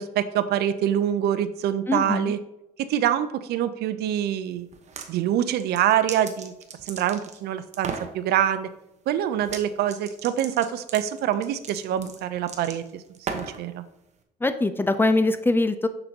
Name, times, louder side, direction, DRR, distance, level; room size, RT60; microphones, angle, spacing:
voice 1, 0.0-2.4 2.8-4.7 5.1-6.5 6.8-8.7 9.1-13.0 13.3-13.8, right 10 dB, 70° right, 13 dB, 0.5 m, -25 dB
voice 2, 1.9-2.3 14.4-15.9, left 2 dB, 10° left, 10 dB, 0.4 m, -22 dB
sound 1, 4.7-5.1 5.6-7.4 7.7-8.1 9.4-9.6 9.9-13.6, right 5 dB, 40° right, 0.9 m, -36 dB
6.8 x 6.7 x 2.8 m, 0.88 s
cardioid pair, 110°, 17 cm